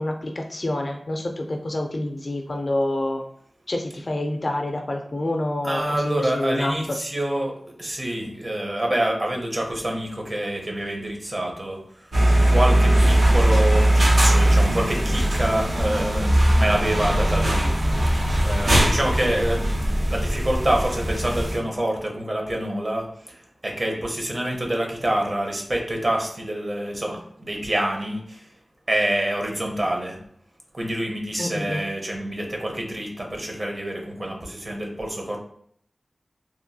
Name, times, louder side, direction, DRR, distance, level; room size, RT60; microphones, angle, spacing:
voice 1, 0.0-3.2 3.7-7.0 31.4-31.8, left 1 dB, 55° left, 2 dB, 0.4 m, -27 dB
voice 2, 5.6-7.5 7.8-11.8 12.5-18.0 18.4-23.1 23.6-28.4 28.9-30.2 30.7-35.4, right 1 dB, 50° right, 0 dB, 0.8 m, -26 dB
sound 1, 12.1-21.6, right 1 dB, 90° right, 0.7 m, -20 dB
3.0 x 2.3 x 2.6 m, 0.65 s
wide cardioid pair, 55°, 0 cm